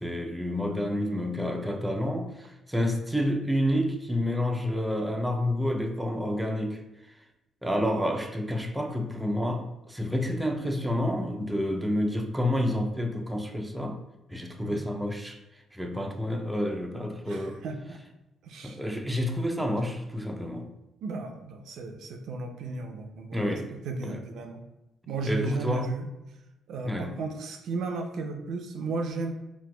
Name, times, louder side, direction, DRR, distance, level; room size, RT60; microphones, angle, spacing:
voice 1, 0.0-6.8 7.6-14.0 14.3-15.4 15.7-17.6 18.6-20.7 23.3-23.7 24.0-24.2 25.2-26.0 26.8-27.2, left 1 dB, 5° right, 3 dB, 0.4 m, -29 dB
voice 2, 17.3-18.0 18.4-18.8 21.0-24.6 25.1-26.1 26.7-29.3, right 3 dB, 75° right, 5 dB, 0.4 m, -34 dB
4.2 x 2.2 x 2.2 m, 0.94 s
cardioid pair, 90°, 0 cm